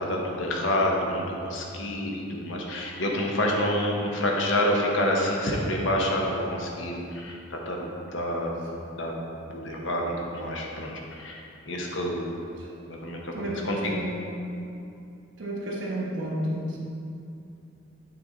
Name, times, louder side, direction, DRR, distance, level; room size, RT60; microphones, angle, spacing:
voice 1, 0.0-8.5 8.9-9.1 9.5-10.9 11.2-12.3 12.9-13.8, left 1 dB, 65° left, -1 dB, 0.9 m, -28 dB
voice 2, 13.3-14.2 15.4-16.8, right 1 dB, 65° right, -4 dB, 1.2 m, -31 dB
7.9 x 3.7 x 3.9 m, 2.6 s
head